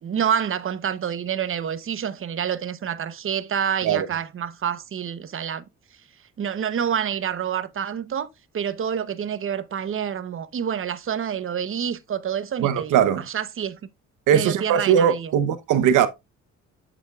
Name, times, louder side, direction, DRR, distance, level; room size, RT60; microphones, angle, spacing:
voice 1, 0.0-5.6 6.4-8.3 8.5-13.8 14.3-15.3, right 8 dB, 45° right, 0.9 m, -28 dB
voice 2, 12.6-13.2 14.3-16.1, right 9 dB, 85° right, 1.0 m, -20 dB
8.3 x 7.1 x 2.4 m
cardioid pair, 90°, 30 cm